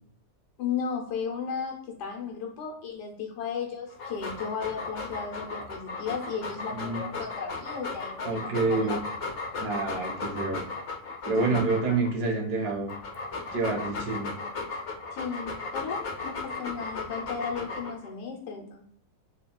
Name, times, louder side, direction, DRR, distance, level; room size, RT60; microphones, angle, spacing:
voice 1, 0.6-9.0 11.4-11.7 15.1-18.8, left 6 dB, 85° left, 1 dB, 1.3 m, -35 dB
Dog, 3.9-12.1 12.7-18.1, left 3 dB, 65° left, 0.6 m, -36 dB
voice 2, 6.7-7.0 8.2-9.0 9.6-10.6 11.2-12.9 13.5-14.3, right 3 dB, 80° right, 1 dB, 1.4 m, -28 dB
3.5 x 2.3 x 2.2 m, 0.63 s
omnidirectional pair, 1.7 m